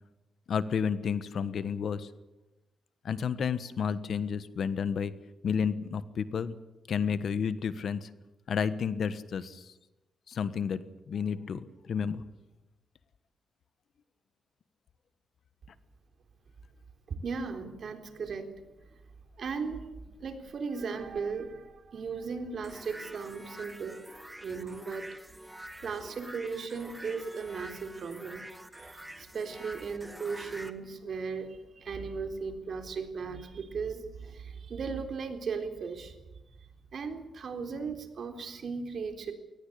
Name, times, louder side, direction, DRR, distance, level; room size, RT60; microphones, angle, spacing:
voice 1, 0.5-2.1 3.0-5.1 5.4-6.6 6.9-8.1 8.5-9.7 10.3-12.2, left 6 dB, 65° left, 14 dB, 1.3 m, -31 dB
voice 2, 17.1-18.5 19.4-24.0 24.4-25.1 25.8-36.2 36.9-39.3, right 5 dB, 60° right, 6 dB, 3.7 m, -37 dB
sound 1, 22.6-30.7, right 1 dB, 10° right, 1.9 m, -47 dB
21.5 x 19.0 x 8.6 m, 1.0 s
cardioid pair, 105°, 0 cm